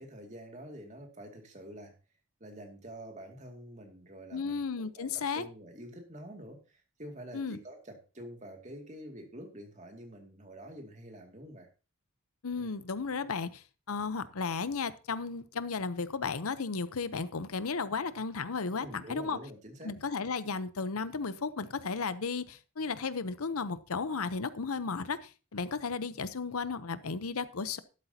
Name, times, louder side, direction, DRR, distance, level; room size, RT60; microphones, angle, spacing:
voice 1, 0.0-1.9 2.4-11.7 12.6-12.7 18.8-19.9, equal, 35° right, 3 dB, 2.3 m, -47 dB
voice 2, 4.3-5.4 7.3-7.6 12.4-19.4 19.8-27.8, left 4 dB, 80° left, 14 dB, 0.8 m, -34 dB
12.5 x 12.0 x 2.8 m, 0.33 s
head